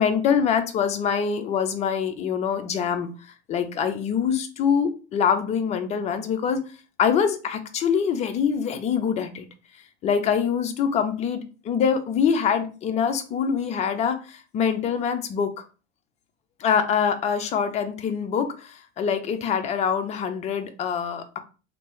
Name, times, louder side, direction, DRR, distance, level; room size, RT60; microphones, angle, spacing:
voice 1, 0.0-3.1 3.5-6.6 7.0-9.5 10.0-15.5 16.6-21.4, left 7 dB, 20° left, 8 dB, 0.4 m, -24 dB
2.9 x 2.8 x 3.1 m, 0.35 s
figure-of-eight pair, 85°, 36 cm